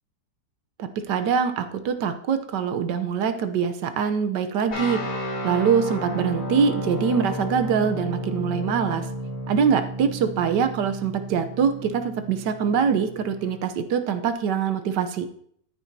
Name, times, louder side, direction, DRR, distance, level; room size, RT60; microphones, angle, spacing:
voice 1, 0.8-5.0 5.4-9.1 9.5-15.2, right 6 dB, 80° right, 8 dB, 1.5 m, -24 dB
sound 1, 4.7-13.6, equal, 60° left, 5.1 m, -32 dB
14.0 x 9.7 x 2.8 m, 0.65 s
omnidirectional pair, 1.8 m